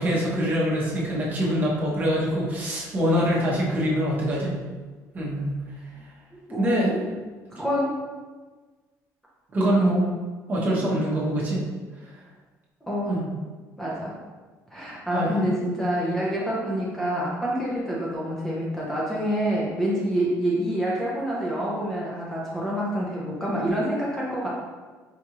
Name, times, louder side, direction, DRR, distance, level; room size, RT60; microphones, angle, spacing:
voice 1, 0.0-4.6 5.1-5.5 6.6-7.0 9.5-10.1 10.5-11.6 13.1-13.2 15.1-15.3, equal, 30° right, -5 dB, 0.9 m, -24 dB
voice 2, 6.5-6.9 7.5-8.0 9.6-10.1 12.9-13.2 13.8-14.1 14.7-24.5, equal, 5° left, -6 dB, 0.6 m, -27 dB
4.6 x 2.5 x 2.9 m, 1.4 s
cardioid pair, 150°, 6 cm